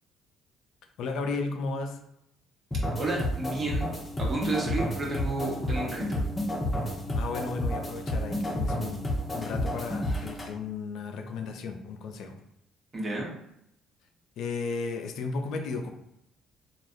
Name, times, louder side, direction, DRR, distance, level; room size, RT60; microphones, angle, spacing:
voice 1, 1.0-2.0 7.1-12.4 14.4-15.9, left 4 dB, 70° left, 4 dB, 0.4 m, -34 dB
sound 1, 2.7-10.5, left 1 dB, 20° left, 0.8 m, -30 dB
voice 2, 3.0-3.9 4.2-6.2 12.9-13.3, right 2 dB, 40° right, -3 dB, 1.2 m, -31 dB
3.3 x 2.3 x 2.6 m, 0.78 s
hypercardioid pair, 60°, 0 cm